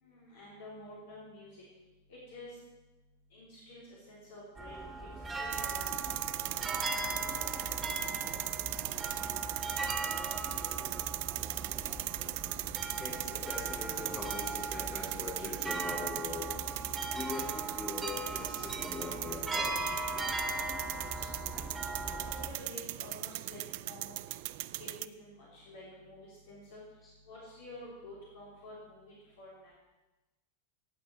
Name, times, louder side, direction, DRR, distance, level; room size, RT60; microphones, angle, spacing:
voice 1, 0.0-1.6 2.1-2.5 3.3-5.1 5.3-6.0 22.1-23.6 23.9-24.2 24.8-26.8 27.2-29.7, left 1 dB, 55° left, -6 dB, 3.2 m, -50 dB
sound 1, 4.6-22.5, right 2 dB, 15° right, 1.3 m, -39 dB
sound 2, 5.5-25.1, right 17 dB, 50° right, 0.3 m, -38 dB
voice 2, 13.0-16.5 17.1-20.1 21.1-21.4, left 3 dB, 20° left, -5 dB, 3.6 m, -42 dB
16.5 x 8.5 x 4.7 m, 1.1 s
figure-of-eight pair, 90°, 0 cm